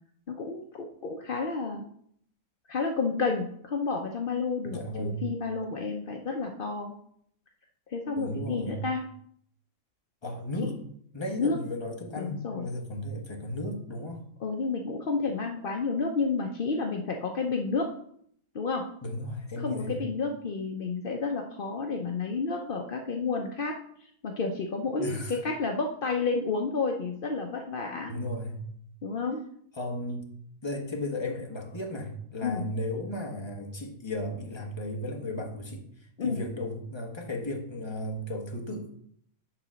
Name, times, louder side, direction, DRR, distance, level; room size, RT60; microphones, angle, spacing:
voice 1, 0.3-1.8 2.7-6.9 7.9-9.0 10.6-10.7 11.4-11.6 12.2-12.7 14.4-17.9 18.5-18.9 19.6-23.8 24.2-28.1 29.0-29.4 32.4-32.7 36.2-36.4, left 4 dB, 60° left, 2 dB, 0.5 m, -30 dB
voice 2, 4.6-5.3 8.2-8.8 10.2-10.8 11.1-14.2 19.0-20.0 25.0-25.4 28.1-28.6 29.7-30.3 30.6-35.8 36.2-39.0, left 1 dB, 20° left, 1 dB, 1.0 m, -35 dB
8.8 x 3.9 x 6.2 m, 0.68 s
omnidirectional pair, 1.8 m